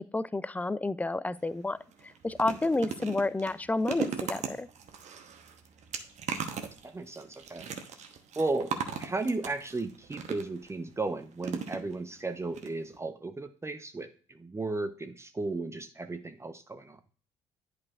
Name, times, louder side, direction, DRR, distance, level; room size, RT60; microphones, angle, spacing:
voice 1, 0.1-1.8 2.2-4.7, left 2 dB, 10° left, 17 dB, 0.4 m, -30 dB
sound 1, 1.4-1.5 1.9-10.7 11.4-12.2 12.5-12.7 12.9-13.0, right 7 dB, 50° right, 0.9 m, -38 dB
voice 2, 6.8-7.7 8.4-17.0, right 3 dB, 20° right, 8 dB, 0.7 m, -35 dB
10.5 x 4.7 x 2.4 m, 0.41 s
figure-of-eight pair, 50°, 15 cm